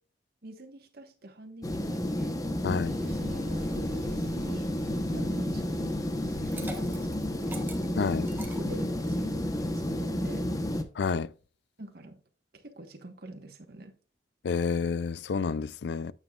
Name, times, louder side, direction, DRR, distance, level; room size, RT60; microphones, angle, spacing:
voice 1, 0.4-2.4 3.0-4.7 5.1-6.0 6.2-7.6 8.5-10.5 11.8-12.2 12.5-13.9, right 1 dB, 60° right, 1.3 m, -46 dB
sound 1, 1.6-10.8, left 1 dB, 20° left, 0.9 m, -31 dB
voice 2, 2.6-2.9 8.0-8.3 11.0-11.3 14.4-16.1, left 5 dB, 65° left, 0.4 m, -29 dB
sound 2, 2.8-8.5 8.8-8.9, right 1 dB, 40° right, 2.4 m, -47 dB
Liquid, 6.2-9.3, right 1 dB, 10° right, 1.3 m, -45 dB
9.1 x 7.5 x 2.4 m
head